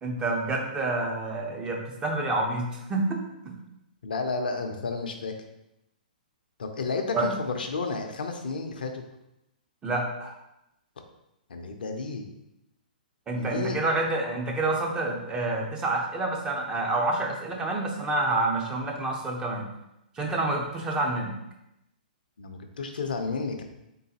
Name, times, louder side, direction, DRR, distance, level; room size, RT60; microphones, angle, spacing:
voice 1, 0.0-3.6 7.1-7.3 9.8-10.3 13.3-19.6 20.1-21.3, right 2 dB, 15° right, 0 dB, 0.7 m, -28 dB
voice 2, 4.0-5.3 6.6-9.0 11.5-12.2 13.3-13.8 22.4-23.6, left 4 dB, 70° left, 5 dB, 0.6 m, -31 dB
3.8 x 3.8 x 2.8 m, 0.87 s
figure-of-eight pair, 120°, 5 cm